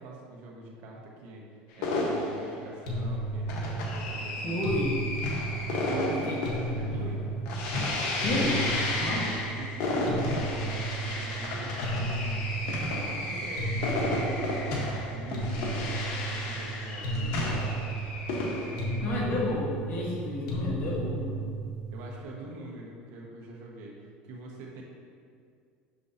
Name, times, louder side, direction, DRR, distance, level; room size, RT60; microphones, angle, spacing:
voice 1, 0.0-4.8 5.8-7.2 9.5-12.5 13.0-14.5 15.1-16.0 16.3-17.6 18.6-19.3 21.9-24.8, right 2 dB, 65° right, -2 dB, 1.4 m, -44 dB
sound 1, 1.8-19.3, left 2 dB, 70° left, 1.3 m, -32 dB
sound 2, 2.9-22.2, right 2 dB, 90° left, 1.2 m, -34 dB
voice 2, 4.4-4.9 6.1-6.4 6.8-7.1 8.2-8.6 9.0-9.3 19.0-21.3, left 1 dB, 45° left, -5 dB, 1.6 m, -31 dB
6.4 x 6.4 x 2.8 m, 2.2 s
supercardioid pair, 115°, 4 cm